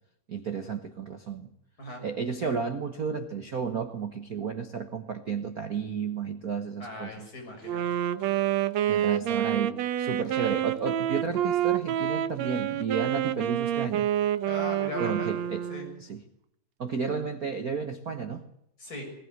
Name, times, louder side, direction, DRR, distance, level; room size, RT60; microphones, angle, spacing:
voice 1, 0.3-1.5 2.0-7.3 8.9-14.1 15.0-15.6 16.0-16.2 16.8-18.4, right 6 dB, 85° right, 0.8 m, -32 dB
voice 2, 6.8-7.9 14.5-15.3 15.7-15.9 18.8-19.1, left 2 dB, 25° left, 7.0 m, -38 dB
Wind instrument woodwind instrument, 7.6-16.0, right 11 dB, 65° right, 2.0 m, -28 dB
21.0 x 19.0 x 7.9 m
omnidirectional pair, 3.6 m